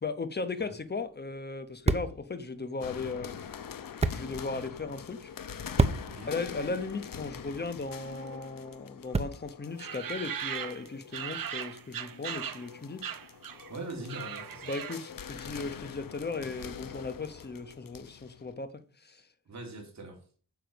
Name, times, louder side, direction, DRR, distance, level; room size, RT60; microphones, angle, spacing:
voice 1, 0.0-3.6 4.1-5.3 6.3-13.0 14.7-19.2, left 3 dB, 30° left, 1.0 m, -37 dB
sound 1, 0.6-9.7, right 3 dB, 20° right, 0.6 m, -35 dB
sound 2, 2.8-18.5, left 7 dB, 70° left, 0.8 m, -45 dB
sound 3, 9.8-12.7 13.0-13.7 14.0-15.2, right 8 dB, 70° right, 0.8 m, -38 dB
voice 2, 13.7-14.7 19.4-20.2, right 2 dB, 50° right, 3.0 m, -42 dB
9.5 x 7.2 x 5.2 m
wide cardioid pair, 180°, 35 cm